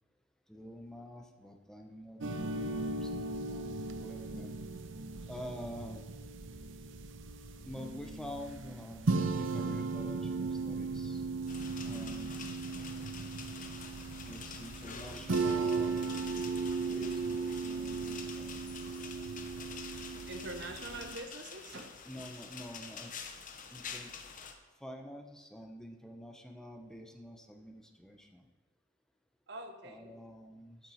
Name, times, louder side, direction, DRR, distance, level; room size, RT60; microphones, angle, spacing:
voice 1, 0.5-3.1 3.5-4.5 5.3-6.0 7.6-11.2 11.8-12.5 14.2-16.0 16.8-18.6 22.0-23.3 23.7-24.1 24.8-28.5 29.8-30.9, equal, 5° left, 2 dB, 1.0 m, -47 dB
sound 1, 2.2-21.2, right 3 dB, 75° right, 0.7 m, -37 dB
sound 2, 11.5-24.5, left 6 dB, 45° left, 0.9 m, -47 dB
voice 2, 20.3-21.9 29.5-30.1 30.4-30.5, right 2 dB, 60° right, 5 dB, 1.2 m, -44 dB
12.5 x 7.4 x 4.3 m, 1.2 s
head